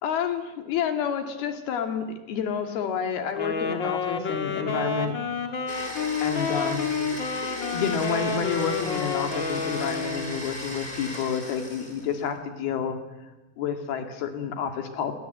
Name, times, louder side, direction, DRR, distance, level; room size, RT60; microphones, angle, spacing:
voice 1, 0.0-5.2 6.2-13.0 13.6-15.1, left 7 dB, 90° left, 6 dB, 4.2 m, -29 dB
Wind instrument woodwind instrument, 3.3-10.5, left 4 dB, 40° left, 2.1 m, -29 dB
Domestic sounds home sounds, 5.7-12.3, left 1 dB, 15° left, 3.3 m, -37 dB
28.5 x 22.5 x 8.1 m, 1.1 s
omnidirectional pair, 4.3 m